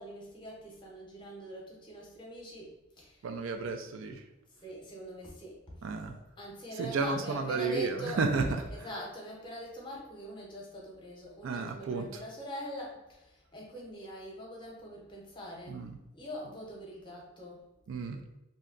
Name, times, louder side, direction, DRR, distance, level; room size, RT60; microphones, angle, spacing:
voice 1, 0.0-3.4 4.5-6.0 6.4-15.9 16.1-17.6, equal, 25° left, -2 dB, 0.8 m, -44 dB
voice 2, 3.2-4.2 5.8-6.2 6.8-8.6 11.4-12.1 15.7-16.0 17.9-18.2, right 4 dB, 70° right, 5 dB, 0.4 m, -32 dB
2.7 x 2.2 x 3.8 m, 0.93 s
head